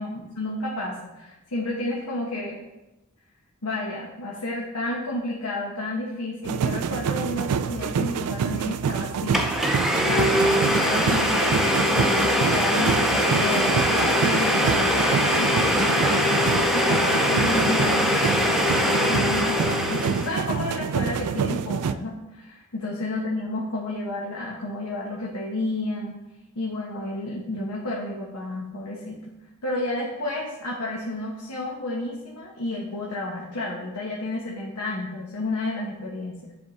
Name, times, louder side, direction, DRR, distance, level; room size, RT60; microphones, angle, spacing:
voice 1, 0.0-2.6 3.6-9.5 10.0-26.2 26.5-29.3 29.6-36.6, left 2 dB, 90° left, -3 dB, 1.1 m, -31 dB
sound 1, 6.4-22.0, right 6 dB, 85° right, 0.3 m, -27 dB
Domestic sounds home sounds, 8.9-9.0 9.3-20.4, left 1 dB, ahead, 0.5 m, -22 dB
10.0 x 3.6 x 4.1 m, 0.98 s
head